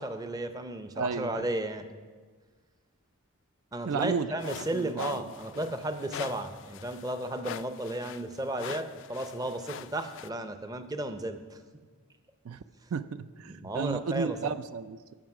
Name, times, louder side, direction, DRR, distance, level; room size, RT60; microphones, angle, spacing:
voice 1, 0.0-1.9 3.7-11.6 12.8-12.9 13.5-14.5, right 1 dB, 15° right, 8 dB, 0.5 m, -34 dB
voice 2, 1.0-1.5 3.9-5.1 12.4-12.6 12.9-15.1, right 5 dB, 65° right, 12 dB, 0.4 m, -33 dB
sound 1, 4.4-10.3, left 8 dB, 55° left, 0.3 m, -44 dB
15.0 x 6.1 x 5.9 m, 1.5 s
head